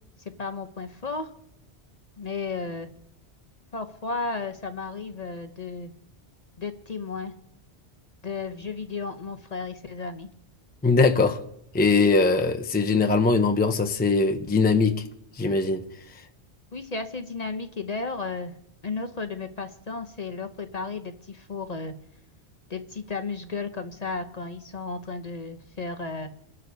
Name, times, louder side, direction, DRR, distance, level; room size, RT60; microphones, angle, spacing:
voice 1, 0.4-1.3 2.2-2.9 3.7-5.9 6.6-7.3 8.2-10.3 16.7-18.5 18.8-21.9 22.7-26.3, left 4 dB, 40° left, 7 dB, 0.8 m, -33 dB
voice 2, 10.8-11.4 11.7-15.0 15.4-15.8, left 3 dB, 10° left, 5 dB, 0.6 m, -21 dB
29.0 x 11.0 x 2.7 m, 0.78 s
omnidirectional pair, 1.2 m